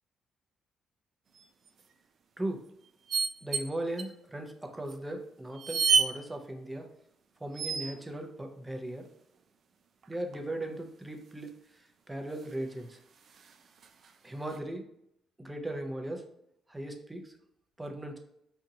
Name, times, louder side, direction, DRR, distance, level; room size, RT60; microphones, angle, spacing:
sound 1, 1.3-1.7 3.1-3.7 4.0-4.1 4.9-5.0 5.5-6.1 7.5-8.0 10.0-10.5 12.1-12.2 12.4-12.5 13.3-14.1 14.5-14.6, right 5 dB, 55° right, 0.4 m, -29 dB
voice 1, 3.4-6.9 7.4-9.1 10.1-13.0 14.2-14.8 15.4-16.2 16.7-17.3 17.8-18.2, right 1 dB, 10° right, 4 dB, 0.7 m, -38 dB
4.3 x 2.5 x 2.8 m, 0.73 s
cardioid pair, 90°, 0 cm